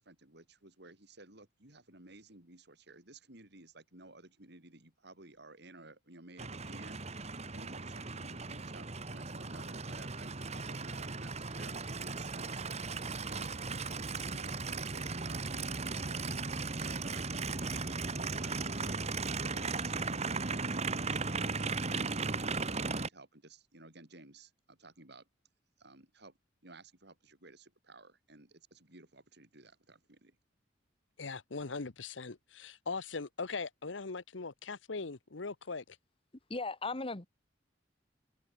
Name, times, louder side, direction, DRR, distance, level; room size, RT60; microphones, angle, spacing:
voice 1, 0.0-12.6 12.9-19.1 19.5-25.3 25.8-26.4 26.6-30.4, right 2 dB, 60° right, 5.4 m, -55 dB
Aircraft, 6.4-23.1, right 4 dB, 35° right, 1.8 m, -37 dB
voice 2, 31.2-36.0, left 4 dB, 90° left, 1.1 m, -40 dB
voice 3, 36.5-37.3, left 3 dB, 30° left, 1.7 m, -36 dB
head